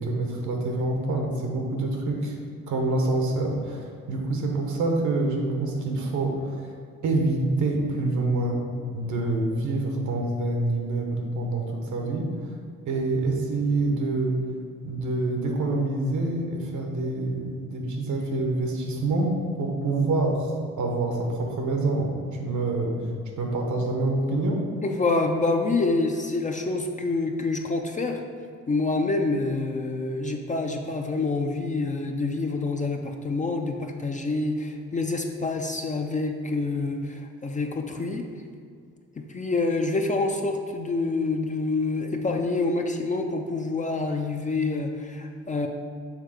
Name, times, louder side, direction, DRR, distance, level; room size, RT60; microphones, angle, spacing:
voice 1, 0.0-2.4 2.7-6.7 7.0-8.6 8.9-12.5 12.9-14.4 14.8-22.1 22.4-23.1 23.4-24.6, right 2 dB, 75° right, 2 dB, 1.3 m, -26 dB
voice 2, 24.8-28.2 28.7-38.2 39.3-45.7, left 3 dB, 25° left, 3 dB, 0.5 m, -27 dB
6.6 x 3.6 x 4.9 m, 2.2 s
cardioid pair, 90°, 30 cm